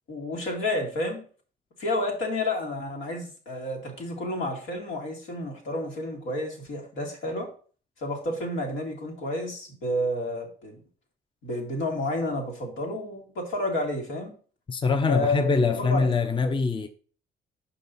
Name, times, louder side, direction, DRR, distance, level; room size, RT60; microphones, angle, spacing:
voice 1, 0.1-1.2 1.8-7.5 8.0-10.8 11.4-14.4 15.1-16.1 16.4-16.5, left 1 dB, 80° left, 2.2 m, -30 dB
voice 2, 14.7-16.9, left 4 dB, 25° left, 0.6 m, -23 dB
5.5 x 5.4 x 4.0 m
cardioid pair, 90°, 20 cm